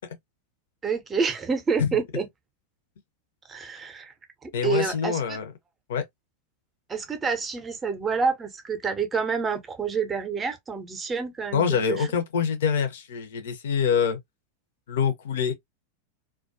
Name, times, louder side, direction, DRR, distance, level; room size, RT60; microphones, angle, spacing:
voice 1, 0.8-2.3 3.5-4.1 4.4-5.4 6.9-12.1, right 5 dB, 20° right, 0.6 m, -28 dB
voice 2, 4.5-5.5 5.9-6.0 11.5-14.2 14.9-15.5, left 7 dB, 60° left, 0.6 m, -25 dB
2.2 x 2.2 x 2.5 m
figure-of-eight pair, 90°, 0 cm